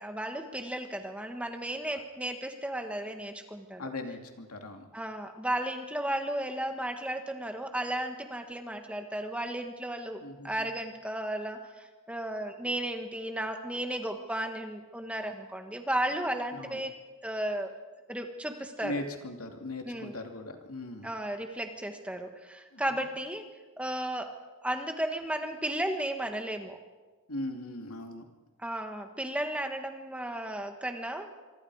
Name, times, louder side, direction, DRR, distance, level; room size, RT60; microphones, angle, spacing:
voice 1, 0.0-3.9 4.9-16.9 17.2-17.7 18.1-18.9 19.8-20.2 21.0-23.4 23.8-24.4 24.6-26.8 28.6-31.3, right 1 dB, 5° right, 5 dB, 1.5 m, -34 dB
voice 2, 3.8-4.9 10.2-10.7 16.5-16.8 18.8-21.1 22.7-23.0 27.3-28.2, left 1 dB, 85° left, 4 dB, 2.6 m, -39 dB
26.0 x 24.0 x 4.9 m, 1.3 s
head